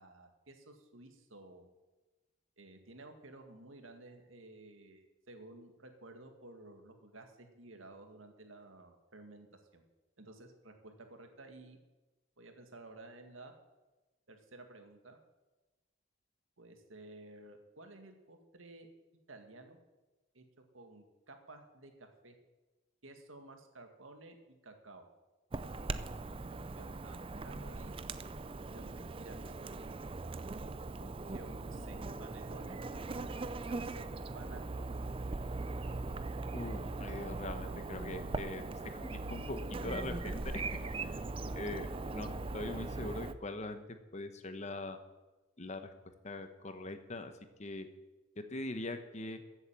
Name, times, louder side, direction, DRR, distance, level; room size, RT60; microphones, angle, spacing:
voice 1, 0.0-1.8 2.6-9.5 9.7-9.8 10.2-11.8 12.4-13.5 14.3-15.2 16.6-18.9 19.3-19.8 20.3-20.4 20.7-22.4 23.0-24.4 24.6-25.1 26.8-27.9 28.7-29.7 31.0-32.8 33.4-34.1 34.3-34.8, right 2 dB, 75° right, 5 dB, 1.9 m, -54 dB
Chirp tweet / Buzz, 25.5-43.3, right 3 dB, 25° right, 0.5 m, -40 dB
voice 2, 36.5-38.6 38.9-40.4 41.5-43.8 44.1-45.0 45.6-45.9 46.2-47.3 47.6-47.9 48.4-49.4, left 2 dB, 35° left, 9 dB, 1.0 m, -42 dB
14.5 x 8.1 x 7.5 m, 1.1 s
head